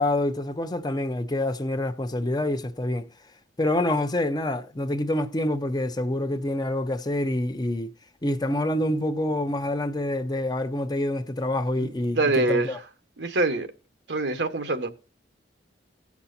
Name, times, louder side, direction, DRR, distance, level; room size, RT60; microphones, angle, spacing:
voice 1, 0.0-3.1 3.6-7.9 8.2-12.8, left 1 dB, 25° left, 0.7 m, -26 dB
voice 2, 11.8-12.7 13.2-13.7 14.1-14.9, right 2 dB, 80° right, 1.3 m, -25 dB
17.0 x 7.1 x 2.7 m
head